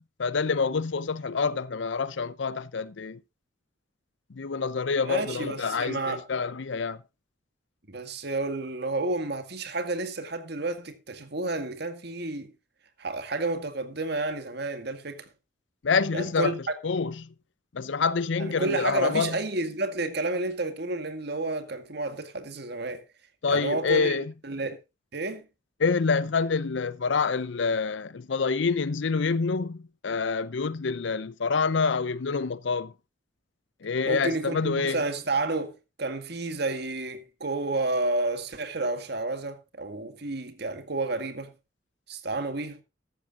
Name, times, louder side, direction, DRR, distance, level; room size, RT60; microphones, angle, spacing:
voice 1, 0.0-3.2 4.3-7.0 15.8-17.3 17.7-19.4 23.4-24.3 25.8-32.9 33.8-35.0, left 5 dB, 70° left, 0.6 m, -27 dB
voice 2, 5.0-6.2 7.9-12.5 13.0-15.3 16.1-16.5 18.4-23.0 23.5-24.2 24.4-24.8 25.1-25.5 34.1-41.5 42.1-42.8, right 2 dB, 55° right, 2.0 m, -30 dB
14.5 x 13.5 x 2.5 m
head